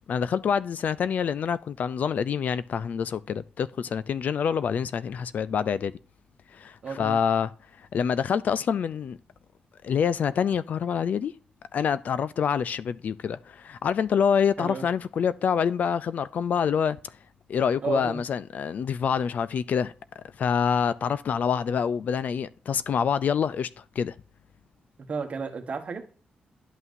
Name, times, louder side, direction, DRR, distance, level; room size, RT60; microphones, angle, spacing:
voice 1, 0.1-5.9 6.5-7.5 7.9-9.2 9.8-11.3 11.7-17.0 17.5-24.1, left 7 dB, 60° left, 0.4 m, -26 dB
voice 2, 6.8-7.2 14.6-14.9 17.8-18.2 25.0-26.1, right 5 dB, 45° right, 1.4 m, -32 dB
11.0 x 5.7 x 2.6 m
wide cardioid pair, 135°, 3 cm